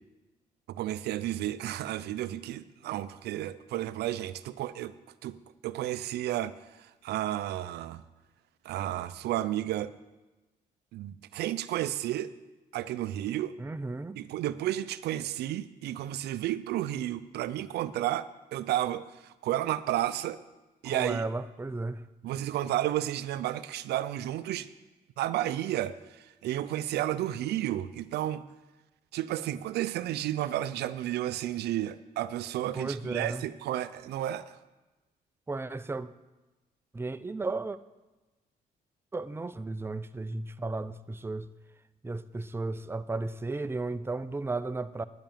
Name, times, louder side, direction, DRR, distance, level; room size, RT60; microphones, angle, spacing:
voice 1, 0.7-4.9 5.2-5.4 5.6-8.0 8.6-9.9 10.9-12.3 12.7-13.6 14.2-20.4 20.8-21.3 22.2-24.7 25.2-28.4 29.1-34.6, right 13 dB, 85° right, 0.5 m, -32 dB
voice 2, 13.6-14.2 20.8-22.0 32.7-33.4 35.5-36.1 36.9-37.8 39.1-41.5 42.0-45.0, right 3 dB, 15° right, 0.6 m, -34 dB
11.5 x 6.0 x 9.0 m
cardioid pair, 70°, 17 cm